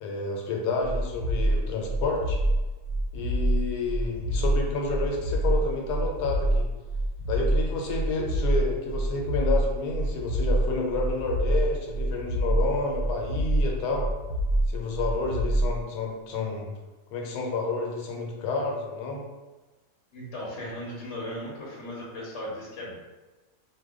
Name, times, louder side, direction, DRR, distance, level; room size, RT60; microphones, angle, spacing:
voice 1, 0.0-2.4 3.1-6.7 7.3-14.1 14.7-16.7 17.1-19.2, left 3 dB, 80° left, 0 dB, 1.2 m, -30 dB
sound 1, 0.8-15.7, right 1 dB, 65° right, 1.0 m, -26 dB
voice 2, 20.1-23.0, left 1 dB, 55° left, -4 dB, 0.8 m, -37 dB
2.7 x 2.2 x 3.5 m, 1.2 s
omnidirectional pair, 1.7 m